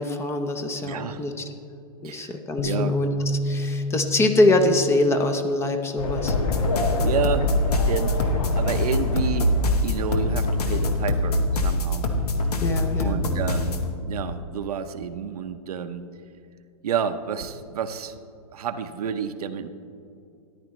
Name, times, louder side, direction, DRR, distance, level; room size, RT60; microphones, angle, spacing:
voice 1, 0.0-1.4 2.0-6.3 12.6-13.2, left 2 dB, 15° left, 7 dB, 0.7 m, -24 dB
voice 2, 0.8-1.2 2.0-2.3 2.6-2.9 6.8-8.2 8.5-12.1 13.0-16.0 16.8-18.2 18.5-19.7, right 7 dB, 75° right, 9 dB, 0.7 m, -30 dB
Bass guitar, 2.6-8.8, left 2 dB, 45° left, 1.2 m, -32 dB
sound 1, 6.0-11.6, left 4 dB, 65° left, 1.4 m, -29 dB
sound 2, 6.3-13.9, left 1 dB, 80° left, 1.2 m, -24 dB
14.0 x 10.5 x 3.1 m, 2.6 s
hypercardioid pair, 130°, 20 cm